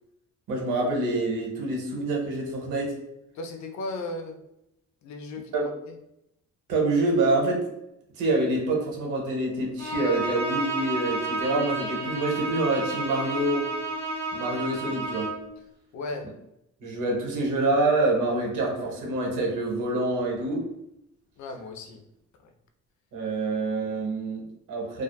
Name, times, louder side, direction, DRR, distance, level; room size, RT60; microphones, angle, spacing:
voice 1, 0.5-2.9 5.5-5.7 6.7-7.6 8.2-13.7 14.3-15.3 16.8-20.6 23.1-25.0, right 2 dB, 90° right, -1 dB, 0.9 m, -26 dB
voice 2, 3.3-4.4 5.0-6.0 15.9-16.4 21.4-22.0 22.4-22.5, left 2 dB, 70° left, 5 dB, 0.5 m, -36 dB
Bowed string instrument, 9.8-15.5, right 2 dB, 10° left, 1.1 m, -31 dB
2.6 x 2.3 x 2.2 m, 0.83 s
cardioid pair, 90°, 30 cm